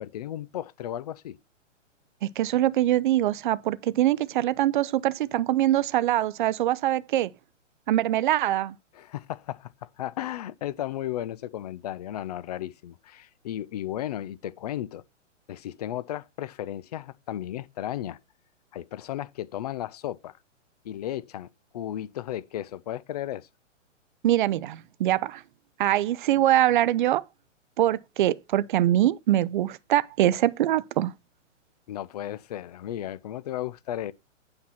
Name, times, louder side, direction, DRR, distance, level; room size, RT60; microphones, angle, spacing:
voice 1, 0.0-1.4 8.9-15.0 15.5-18.2 18.7-20.3 20.8-21.5 21.7-23.5 31.9-34.1, left 12 dB, 35° left, 0.4 m, -34 dB
voice 2, 2.2-7.3 7.9-8.7 24.2-25.4 25.8-27.2 27.8-31.1, right 13 dB, 40° right, 0.6 m, -23 dB
8.7 x 5.9 x 5.8 m
hypercardioid pair, 135°, 37 cm